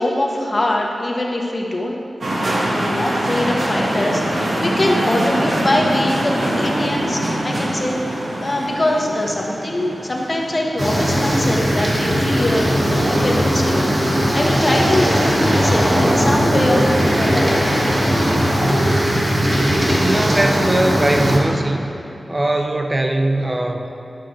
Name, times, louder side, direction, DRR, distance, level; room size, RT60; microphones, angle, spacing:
voice 1, 0.0-2.0 2.7-16.8 17.2-17.9, left 1 dB, 35° left, -1 dB, 1.2 m, -22 dB
sound 1, 2.2-21.0, right 1 dB, 65° right, 1.5 m, -26 dB
sound 2, 10.8-21.4, equal, 40° right, 1.9 m, -18 dB
voice 2, 20.0-21.9 22.3-23.9, right 1 dB, 25° right, 4 dB, 0.5 m, -20 dB
11.5 x 5.9 x 4.7 m, 2.8 s
wide cardioid pair, 90°, 0 cm